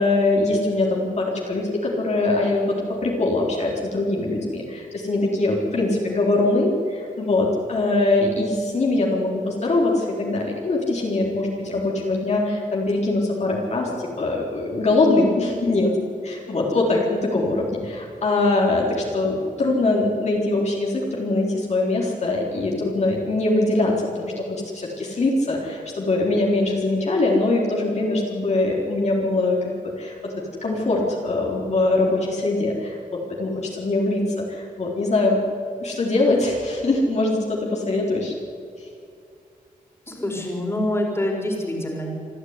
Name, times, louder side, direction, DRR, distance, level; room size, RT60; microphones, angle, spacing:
voice 1, 0.0-13.9 14.2-15.9 16.2-30.3 30.6-35.4 35.8-38.3 38.8-38.9, left 2 dB, 50° left, -2 dB, 4.1 m, -22 dB
voice 2, 40.1-42.1, left 1 dB, 15° left, 0 dB, 4.8 m, -26 dB
26.0 x 13.5 x 9.8 m, 2.4 s
wide cardioid pair, 130°, 15 cm